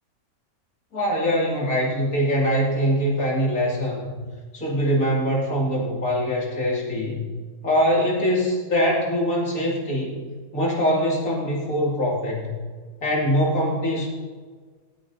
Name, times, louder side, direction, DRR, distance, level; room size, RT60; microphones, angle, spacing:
voice 1, 0.9-4.2 4.5-7.2 7.6-10.2 10.5-12.5 13.0-14.1, equal, 85° left, -3 dB, 2.9 m, -23 dB
17.5 x 9.0 x 2.7 m, 1.5 s
omnidirectional pair, 1.5 m